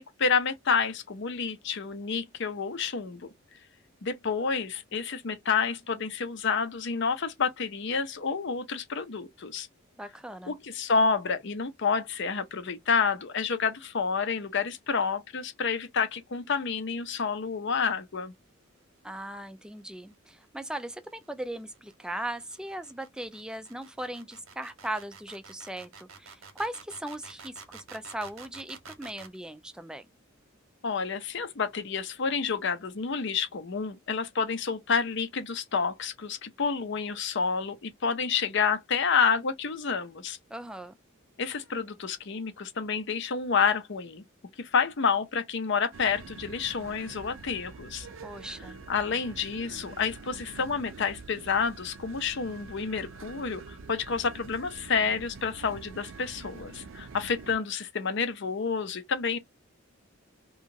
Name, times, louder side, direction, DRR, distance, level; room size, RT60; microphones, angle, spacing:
voice 1, 0.0-3.3 4.0-9.7 10.5-18.3 30.8-40.4 41.4-44.2 44.6-48.1 48.9-59.4, left 5 dB, 60° left, 0.6 m, -29 dB
voice 2, 10.0-10.5 19.0-30.1 40.5-41.0 48.2-48.8, right 1 dB, 5° right, 0.3 m, -38 dB
sound 1, 20.1-29.4, right 5 dB, 90° right, 1.0 m, -49 dB
sound 2, 45.9-57.5, right 4 dB, 70° right, 0.5 m, -46 dB
2.9 x 2.3 x 2.6 m
head